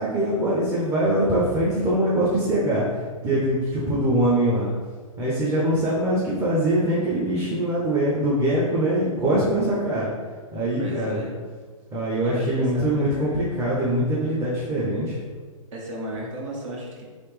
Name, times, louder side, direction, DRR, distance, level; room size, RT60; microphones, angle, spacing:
voice 1, 0.0-2.9 3.2-4.7 5.2-10.1 10.5-11.2 11.9-15.2, right 1 dB, 15° right, -7 dB, 0.7 m, -23 dB
voice 2, 10.8-11.4 12.2-13.5 15.7-17.0, right 1 dB, 60° right, -2 dB, 0.9 m, -34 dB
3.3 x 2.9 x 3.1 m, 1.5 s
hypercardioid pair, 120°, 18 cm